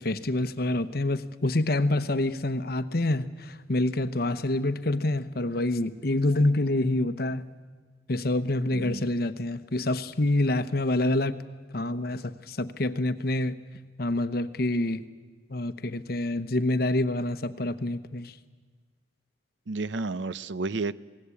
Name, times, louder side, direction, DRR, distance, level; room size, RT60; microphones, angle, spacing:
voice 1, 0.0-7.4 8.1-11.4 11.7-13.6 14.0-15.0 15.5-18.3, left 2 dB, 55° left, 11 dB, 1.0 m, -27 dB
voice 2, 8.7-9.0 19.7-21.0, right 3 dB, 85° right, 17 dB, 0.7 m, -31 dB
27.5 x 19.0 x 8.5 m, 1.5 s
head